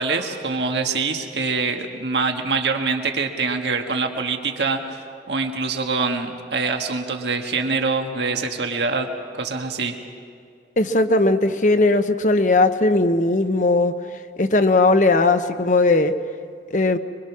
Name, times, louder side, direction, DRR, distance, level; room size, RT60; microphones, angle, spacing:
voice 1, 0.0-9.1 9.4-10.0, right 4 dB, 80° right, 4 dB, 1.6 m, -24 dB
voice 2, 10.8-13.9 14.4-16.1 16.7-17.0, left 2 dB, 45° left, 9 dB, 1.0 m, -18 dB
24.5 x 23.5 x 6.1 m, 2.4 s
head